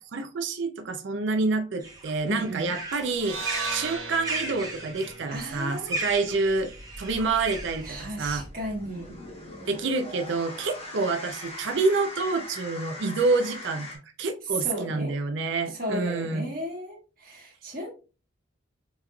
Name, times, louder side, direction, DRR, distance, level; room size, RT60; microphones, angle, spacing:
voice 1, 0.0-3.4 3.7-6.7 7.0-8.5 9.7-13.9 14.2-16.5, right 3 dB, 60° right, 0.4 m, -27 dB
sound 1, 1.8-7.9, right 2 dB, 20° right, 0.8 m, -36 dB
voice 2, 2.2-2.7 5.3-6.0 7.8-9.1 14.5-15.1 15.7-17.9, equal, 45° right, 1.6 m, -34 dB
sound 2, 3.1-7.3, right 3 dB, 85° right, 1.6 m, -38 dB
sound 3, 6.3-14.0, left 1 dB, 30° left, 1.0 m, -41 dB
5.5 x 3.0 x 2.2 m
head